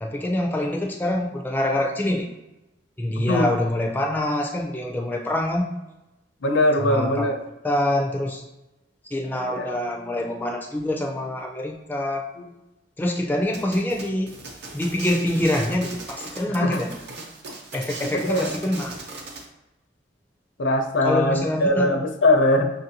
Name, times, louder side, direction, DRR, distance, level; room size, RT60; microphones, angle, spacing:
voice 1, 0.0-2.3 3.0-5.7 6.8-7.3 7.6-8.5 9.1-12.3 13.0-14.3 14.7-17.0 17.7-19.0 21.0-21.9, left 1 dB, 10° left, 1 dB, 0.3 m, -25 dB
voice 2, 6.4-7.4 9.5-9.7 16.6-16.8 18.1-18.5 20.6-22.7, left 1 dB, 75° left, 4 dB, 0.6 m, -21 dB
sound 1, 13.5-19.5, right 3 dB, 60° right, 0.7 m, -38 dB
6.0 x 2.6 x 2.8 m, 0.97 s
head